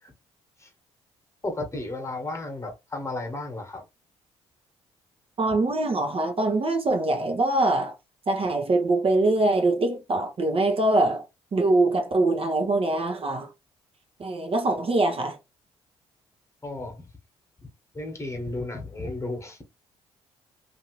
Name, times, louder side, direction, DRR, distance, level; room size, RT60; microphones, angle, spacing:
voice 1, 1.4-3.8 16.6-16.9 17.9-19.6, left 2 dB, 20° left, 1.3 m, -33 dB
voice 2, 5.4-7.9 8.3-11.2 11.5-13.5 14.2-15.4, right 2 dB, 40° right, 0.9 m, -23 dB
2.7 x 2.7 x 3.0 m
hypercardioid pair, 50°, 15 cm